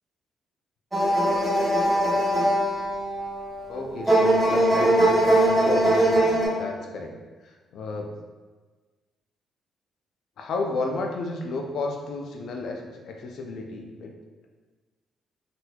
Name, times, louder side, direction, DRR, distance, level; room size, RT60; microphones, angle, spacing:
sound 1, 0.9-6.5, right 1 dB, 15° right, 1.0 m, -21 dB
voice 1, 3.7-7.1 7.4-8.1 10.4-14.1, left 3 dB, 70° left, 2 dB, 0.5 m, -32 dB
4.0 x 2.7 x 2.3 m, 1.3 s
cardioid pair, 90°, 0 cm